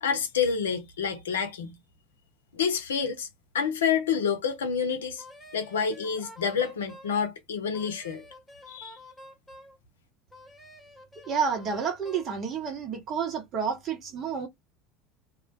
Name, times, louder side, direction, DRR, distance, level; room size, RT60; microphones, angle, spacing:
voice 1, 0.0-1.8 2.5-3.3 3.5-5.2 5.5-8.2 8.7-9.0, left 6 dB, 75° left, 0.5 m, -28 dB
Wind instrument woodwind instrument, 5.2-7.2 7.7-9.8 10.3-12.3, left 1 dB, 15° left, 1.0 m, -49 dB
voice 2, 11.2-14.5, right 6 dB, 40° right, 1.0 m, -30 dB
2.3 x 2.2 x 2.5 m
figure-of-eight pair, 70°, 0 cm